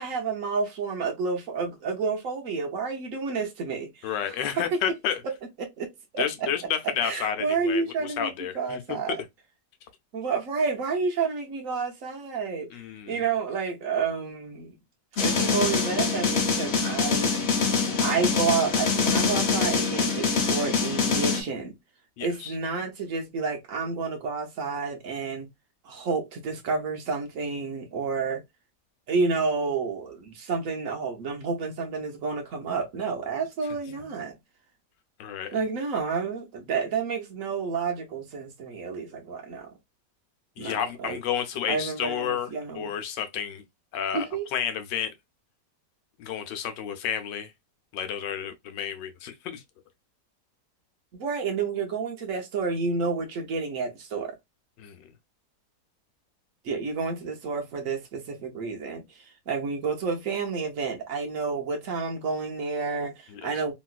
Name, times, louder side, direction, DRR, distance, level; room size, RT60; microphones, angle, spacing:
voice 1, 0.0-4.8 5.6-6.2 7.0-9.2 10.1-12.8 13.1-14.8 15.2-17.4 18.0-21.8 22.2-25.5 25.8-28.4 29.1-34.4 35.5-39.7 40.6-41.2 41.7-43.0 44.1-44.5 51.1-54.4 56.6-63.7, right 5 dB, 60° right, 1.0 m, -30 dB
voice 2, 4.0-5.2 6.2-8.8 12.7-13.2 22.2-22.5 35.2-35.5 40.6-42.5 42.7-43.6 43.9-44.3 44.5-45.1 46.2-47.5 47.9-49.6 54.8-55.0 63.3-63.5, left 9 dB, 90° left, 1.3 m, -31 dB
sound 1, 15.2-21.4, left 5 dB, 45° left, 1.0 m, -24 dB
3.0 x 3.0 x 2.3 m
omnidirectional pair, 1.8 m